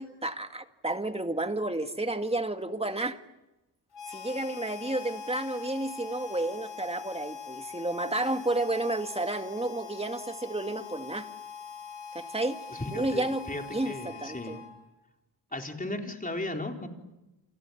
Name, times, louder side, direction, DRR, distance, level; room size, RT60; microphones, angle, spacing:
voice 1, 0.0-3.2 4.1-11.3 12.1-12.6 12.9-13.4 13.7-14.6, right 2 dB, 15° right, 7 dB, 2.0 m, -31 dB
Harmonica, 3.9-15.0, left 6 dB, 80° left, 4.8 m, -43 dB
voice 2, 12.7-14.6 15.5-16.9, left 2 dB, 20° left, 2 dB, 4.1 m, -36 dB
29.0 x 28.5 x 7.2 m, 0.99 s
wide cardioid pair, 85°, 41 cm